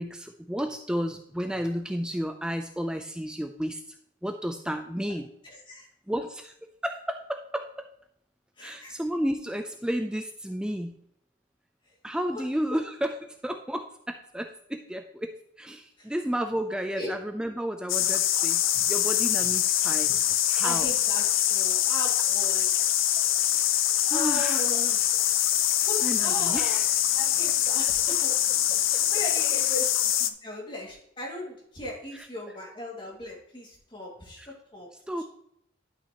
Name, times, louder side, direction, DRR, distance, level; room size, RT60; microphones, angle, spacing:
voice 1, 0.0-4.0 4.2-5.3 6.1-6.5 6.8-7.9 8.6-11.0 12.0-20.9 23.6-23.8 24.1-24.6 26.0-26.9 28.9-29.0 34.4-34.5 35.1-35.2, equal, 5° right, 6 dB, 0.4 m, -32 dB
voice 2, 5.4-5.9 8.6-8.9 12.3-12.4 12.7-12.8 16.0-16.1 17.0-17.1 20.6-21.2 21.5-22.7 24.1-25.1 25.9-26.8 27.1-28.5 28.8-35.2, left 1 dB, 25° left, -2 dB, 2.1 m, -38 dB
sound 1, 17.9-30.3, left 11 dB, 80° left, 0.5 m, -24 dB
11.0 x 5.9 x 2.9 m, 0.73 s
head